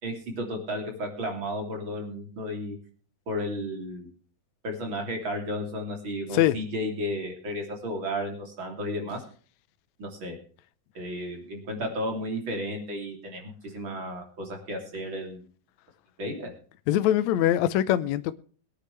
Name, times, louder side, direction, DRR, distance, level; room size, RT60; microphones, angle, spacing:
voice 1, 0.0-2.8 3.3-4.1 4.6-9.2 10.0-10.4 10.9-15.4 16.2-16.5, equal, 35° right, 3.5 m, -33 dB
voice 2, 16.9-18.3, left 12 dB, 80° left, 1.6 m, -22 dB
22.5 x 9.7 x 3.3 m
omnidirectional pair, 4.1 m